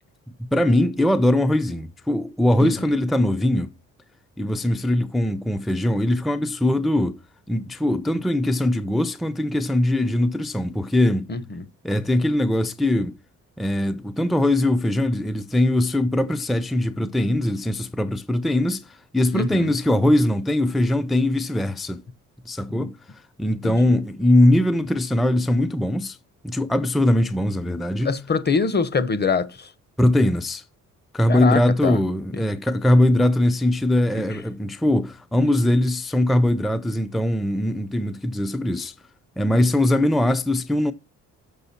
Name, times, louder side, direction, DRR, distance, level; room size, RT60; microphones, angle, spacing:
voice 1, 0.5-3.7 4.4-7.2 7.5-11.3 11.8-13.2 13.6-22.0 22.5-26.2 26.4-28.1 30.0-30.6 31.1-38.9 39.4-40.9, left 1 dB, ahead, 0.5 m, -21 dB
voice 2, 11.3-11.6 19.3-19.7 22.7-22.9 23.6-23.8 28.0-29.7 31.3-32.0 34.3-34.4, left 4 dB, 35° left, 1.0 m, -24 dB
6.9 x 6.3 x 4.2 m
cardioid pair, 90°, 30 cm